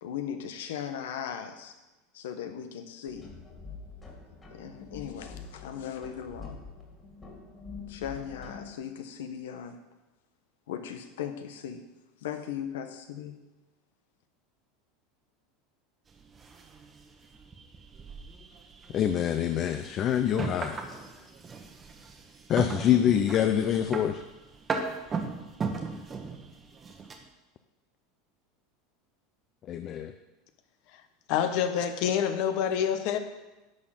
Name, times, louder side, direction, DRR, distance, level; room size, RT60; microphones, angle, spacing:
voice 1, 0.0-1.8 2.1-3.3 4.5-6.6 7.9-9.8 10.7-11.9 12.2-13.4, left 8 dB, 90° left, 8 dB, 1.1 m, -38 dB
sound 1, 3.1-8.7, left 4 dB, 20° left, 2.6 m, -45 dB
sound 2, 16.1-27.2, right 4 dB, 20° right, 1.2 m, -38 dB
voice 2, 18.9-20.8 22.5-24.2 29.7-30.1, left 10 dB, 40° left, 8 dB, 0.5 m, -25 dB
voice 3, 31.3-33.2, left 8 dB, 60° left, 9 dB, 1.0 m, -27 dB
11.0 x 4.5 x 7.4 m, 1.1 s
supercardioid pair, 135°, 0 cm